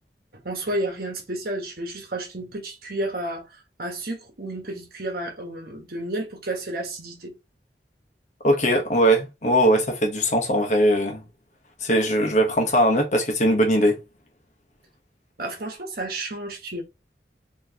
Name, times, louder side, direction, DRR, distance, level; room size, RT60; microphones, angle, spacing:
voice 1, 0.3-3.5 3.8-7.3 15.4-16.8, right 1 dB, 55° right, 1.3 m, -31 dB
voice 2, 8.4-11.2 11.8-14.0, equal, 40° left, 1.1 m, -20 dB
4.5 x 3.0 x 2.9 m
head